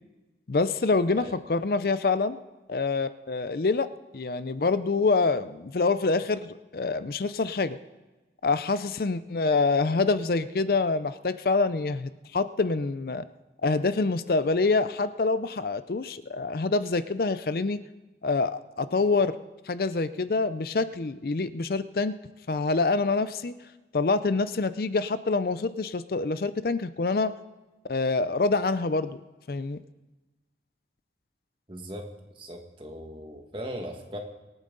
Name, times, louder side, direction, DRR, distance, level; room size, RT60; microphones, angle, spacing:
voice 1, 0.5-2.4 2.7-3.9 4.1-7.8 8.4-13.2 13.6-17.8 18.2-19.4 19.7-22.2 22.5-23.5 23.9-27.3 27.9-29.2 29.5-29.8, left 3 dB, 55° left, 13 dB, 0.5 m, -26 dB
voice 2, 31.7-32.1 32.4-34.2, equal, 30° right, 3 dB, 1.7 m, -38 dB
24.5 x 9.1 x 3.9 m, 1.1 s
head